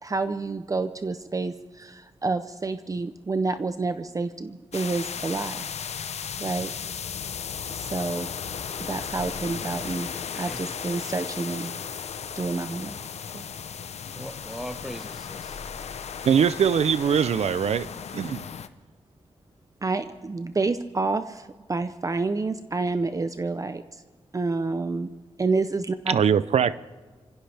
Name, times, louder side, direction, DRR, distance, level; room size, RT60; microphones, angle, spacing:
voice 1, 0.0-5.7 6.4-6.7 7.7-8.3 8.8-10.1 10.4-11.7 12.4-13.0 13.3-13.4 19.8-24.0 24.3-25.1 25.4-26.1, right 3 dB, 30° right, 0.6 m, -28 dB
sound 1, 4.7-18.7, left 7 dB, 85° left, 0.7 m, -35 dB
voice 2, 10.3-10.9 14.1-15.6, equal, 5° right, 1.2 m, -40 dB
voice 3, 16.2-17.9 18.1-18.5 26.1-26.8, right 7 dB, 80° right, 0.5 m, -22 dB
25.5 x 16.0 x 3.4 m
wide cardioid pair, 100°, 11 cm